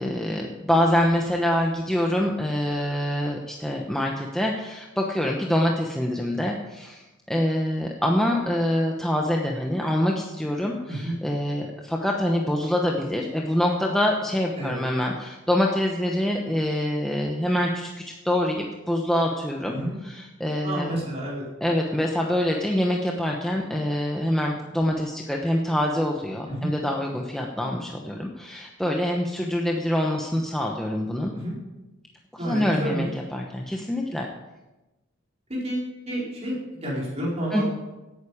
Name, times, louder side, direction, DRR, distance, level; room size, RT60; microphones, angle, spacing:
voice 1, 0.0-19.8 20.0-21.0 21.6-31.3 32.4-34.3 37.5-37.6, left 1 dB, 5° left, -1 dB, 1.0 m, -25 dB
voice 2, 20.6-21.4 26.5-26.7 31.3-31.6 32.4-33.1 35.5-37.6, right 1 dB, 35° right, -5 dB, 4.5 m, -30 dB
17.0 x 9.4 x 5.0 m, 1.1 s
head